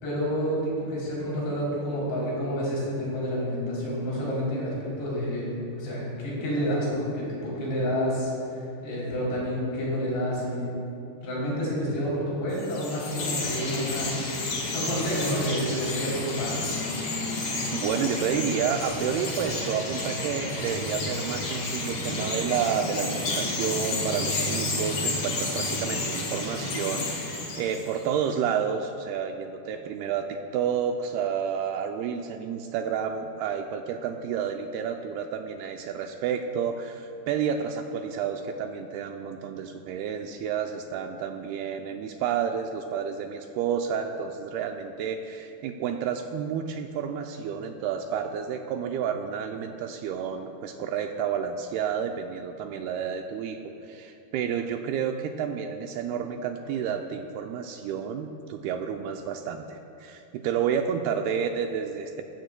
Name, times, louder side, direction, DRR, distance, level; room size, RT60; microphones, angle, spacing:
voice 1, 0.0-8.3 8.8-10.7 11.2-14.2 14.7-16.8, equal, 80° left, -6 dB, 5.5 m, -29 dB
Chirp tweet, 12.5-28.1, left 2 dB, 50° left, 1.9 m, -31 dB
voice 2, 17.7-62.2, right 7 dB, 85° right, 4 dB, 2.3 m, -30 dB
17.0 x 15.5 x 2.2 m, 2.7 s
omnidirectional pair, 4.9 m